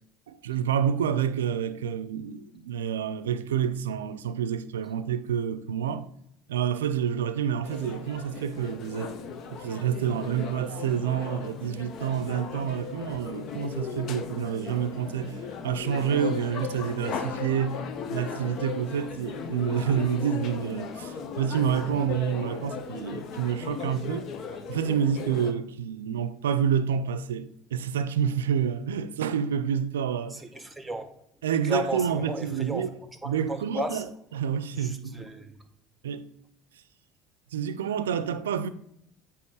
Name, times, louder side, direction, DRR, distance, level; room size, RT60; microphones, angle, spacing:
voice 1, 0.3-6.1 6.5-9.2 9.5-17.8 18.1-24.3 24.7-30.4 31.4-32.9 33.2-34.1 34.3-35.2 36.0-36.3 37.5-38.7, right 8 dB, 85° right, 0.4 m, -28 dB
sound 1, 7.6-25.5, left 6 dB, 55° left, 1.0 m, -37 dB
voice 2, 30.3-31.1 31.6-32.9 33.2-34.0 34.7-35.6, right 2 dB, 10° right, 1.2 m, -34 dB
8.4 x 3.0 x 6.3 m
hypercardioid pair, 75°, 0 cm